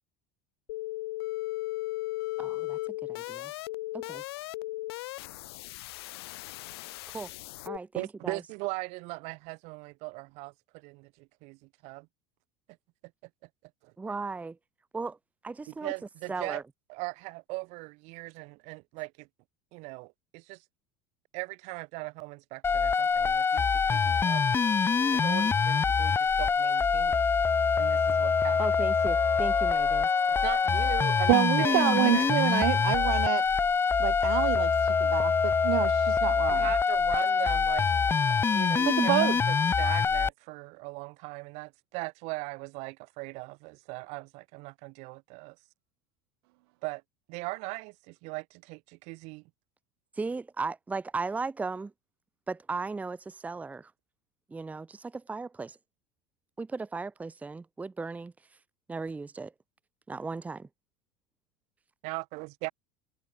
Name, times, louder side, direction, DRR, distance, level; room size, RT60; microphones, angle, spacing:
sound 1, 0.7-7.8, left 19 dB, 90° left, 2.8 m, -36 dB
voice 1, 2.4-3.5 3.9-4.2 7.1-7.3 7.6-8.4 14.0-14.6 14.9-15.2 15.4-15.9 16.3-16.6 28.6-30.1 50.1-51.9 52.5-53.9 54.5-55.8 56.6-58.3 58.9-59.5 60.1-60.7, right 4 dB, 10° right, 1.0 m, -36 dB
voice 2, 7.9-12.1 13.8-13.9 15.7-16.6 16.9-19.3 19.7-20.6 21.3-24.4 25.1-27.2 27.7-28.6 30.3-32.3 36.5-37.9 38.3-45.6 46.8-47.0 47.3-49.4 62.0-62.7, right 27 dB, 60° right, 4.1 m, -39 dB
sound 2, 22.6-40.3, left 5 dB, 20° left, 1.0 m, -25 dB
Wind instrument woodwind instrument, 28.9-33.4, left 12 dB, 40° left, 1.7 m, -43 dB
voice 3, 31.3-33.5 34.0-36.7 38.9-39.3, right 25 dB, 80° right, 0.7 m, -27 dB
supercardioid pair, 135°, 13 cm